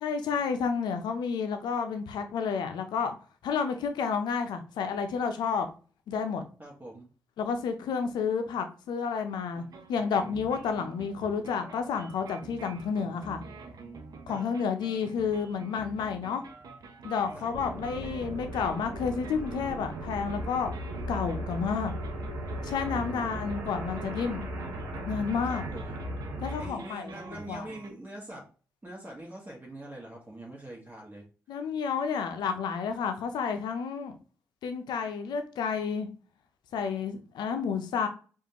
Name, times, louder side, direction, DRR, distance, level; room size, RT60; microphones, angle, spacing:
voice 1, 0.0-3.2 3.4-5.7 6.1-6.4 7.4-9.6 9.9-13.4 14.3-16.4 17.0-20.7 21.1-21.9 22.6-24.5 25.1-25.6 26.4-27.7 31.5-34.2 34.6-36.1 36.7-38.1, left 6 dB, 70° left, 7 dB, 0.7 m, -30 dB
voice 2, 6.6-7.1 14.3-14.4 17.3-17.5 22.8-23.5 25.4-26.0 26.6-28.4 28.8-31.2, right 1 dB, 25° right, -3 dB, 1.5 m, -44 dB
sound 1, 9.5-27.9, right 4 dB, 55° right, 0.8 m, -48 dB
sound 2, 17.5-26.7, right 1 dB, 80° right, 1.2 m, -37 dB
5.0 x 2.6 x 2.9 m, 0.37 s
hypercardioid pair, 40°, 8 cm